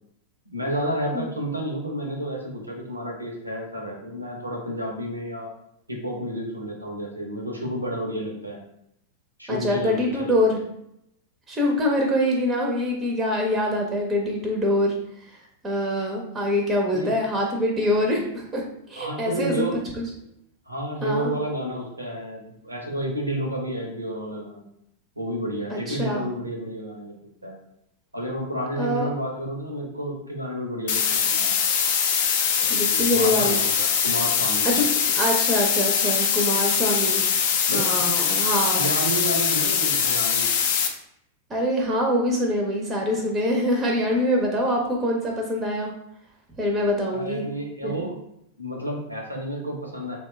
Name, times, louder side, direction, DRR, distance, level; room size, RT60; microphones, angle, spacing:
voice 1, 0.5-5.5 5.9-8.6 9.4-10.4 16.9-17.1 19.0-19.8 20.7-24.6 25.2-27.2 27.4-27.5 28.1-31.6 32.9-34.7 37.7-38.2 38.6-40.5 47.1-48.1 48.6-50.2, equal, 90° right, 1 dB, 0.6 m, -31 dB
voice 2, 9.5-10.6 11.5-19.7 20.0-20.1 21.0-21.3 25.7-26.3 28.8-29.1 32.7-33.6 34.6-34.8 35.1-37.3 37.7-38.8 41.5-45.9 46.6-47.4 47.8-48.0, left 1 dB, 20° right, 1 dB, 0.5 m, -24 dB
sound 1, 30.9-40.9, left 7 dB, 55° left, 0.4 m, -22 dB
2.8 x 2.1 x 3.2 m, 0.78 s
figure-of-eight pair, 90°, 0 cm